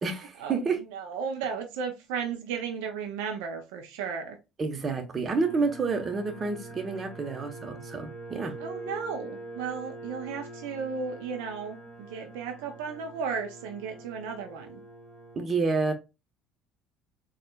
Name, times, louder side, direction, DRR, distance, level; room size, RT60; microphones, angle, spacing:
voice 1, 0.0-0.8 4.6-8.5 15.4-15.9, right 4 dB, 35° right, 1.0 m, -29 dB
voice 2, 0.9-4.4 8.6-11.8 12.1-14.8, right 6 dB, 80° right, 0.5 m, -34 dB
sound 1, 5.3-15.4, right 2 dB, 20° right, 1.5 m, -44 dB
4.3 x 2.4 x 2.3 m
hypercardioid pair, 70°, 0 cm